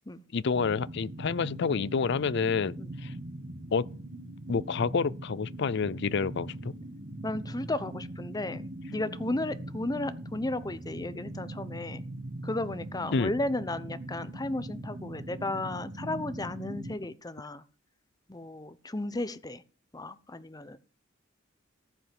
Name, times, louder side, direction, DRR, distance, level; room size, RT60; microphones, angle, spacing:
voice 1, 0.3-2.8 3.0-3.1 3.7-3.9 4.5-6.7 13.1-13.3, left 5 dB, 65° left, 0.5 m, -28 dB
sound 1, 0.5-17.0, right 1 dB, 65° right, 1.6 m, -41 dB
voice 2, 7.2-12.0 12.4-17.6 18.3-19.6 19.9-20.8, left 2 dB, 20° left, 0.9 m, -34 dB
14.5 x 5.6 x 7.7 m
head